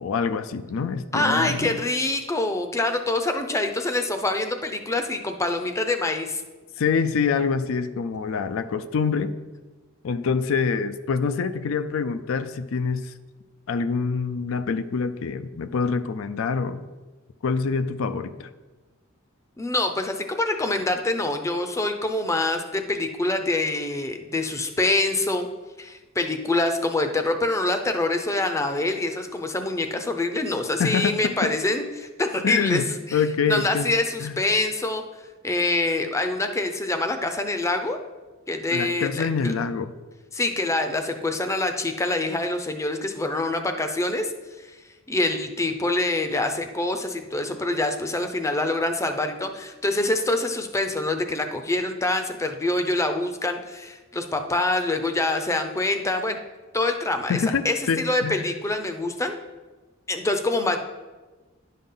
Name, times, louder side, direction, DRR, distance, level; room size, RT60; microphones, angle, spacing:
voice 1, 0.0-1.8 6.8-9.3 10.0-13.1 13.7-16.8 17.4-18.5 30.8-31.5 32.4-32.9 33.1-33.9 34.2-34.3 38.7-39.9 57.3-58.4, left 5 dB, 70° left, 11 dB, 0.4 m, -25 dB
voice 2, 1.1-6.4 19.6-25.5 25.8-33.2 33.5-35.0 35.4-38.0 38.5-39.5 40.3-44.3 44.6-44.8 45.1-56.4 56.7-59.3 60.1-60.8, left 2 dB, 15° left, 6 dB, 0.5 m, -25 dB
10.5 x 5.6 x 3.8 m, 1.3 s
head